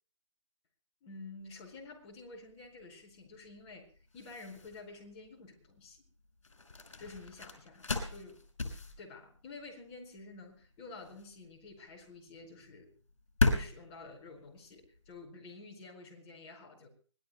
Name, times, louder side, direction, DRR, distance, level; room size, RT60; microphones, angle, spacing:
voice 1, 1.0-6.0 7.0-8.4 9.0-12.9 13.4-16.9, left 3 dB, 25° left, 1 dB, 4.8 m, -50 dB
sound 1, 1.4-15.3, left 3 dB, 75° left, 5.3 m, -37 dB
25.0 x 19.0 x 2.2 m, 0.42 s
figure-of-eight pair, 150°, 16 cm